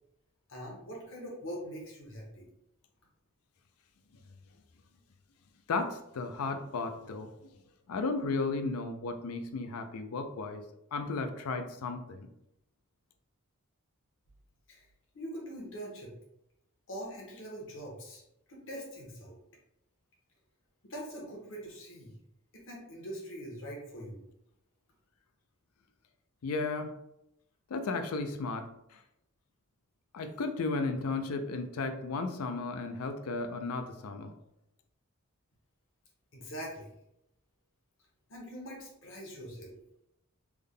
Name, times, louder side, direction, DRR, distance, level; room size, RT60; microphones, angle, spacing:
voice 1, 0.5-2.5 14.7-14.9 15.1-16.1 16.9-18.2 18.5-19.4 20.8-22.1 22.5-24.2 36.3-36.9 38.3-39.7, equal, 60° left, -2 dB, 1.0 m, -43 dB
voice 2, 5.7-7.3 7.9-10.6 10.9-12.3 26.4-26.9 27.7-29.0 30.1-34.4, left 3 dB, 80° left, 8 dB, 0.4 m, -34 dB
3.4 x 2.1 x 3.6 m, 0.82 s
head